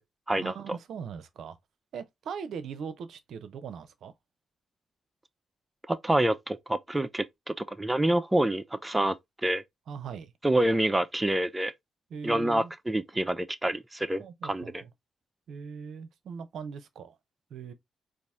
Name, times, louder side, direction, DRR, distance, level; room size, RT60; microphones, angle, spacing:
voice 1, 0.3-1.6 1.9-4.1 9.9-10.3 12.1-12.7 14.2-14.9 15.5-17.2 17.5-17.7, right 6 dB, 65° right, 0.6 m, -40 dB
voice 2, 5.9-9.1 9.4-9.6 10.4-11.7 12.2-14.8, right 1 dB, 15° right, 0.5 m, -27 dB
4.1 x 2.6 x 3.4 m
hypercardioid pair, 40°, 0 cm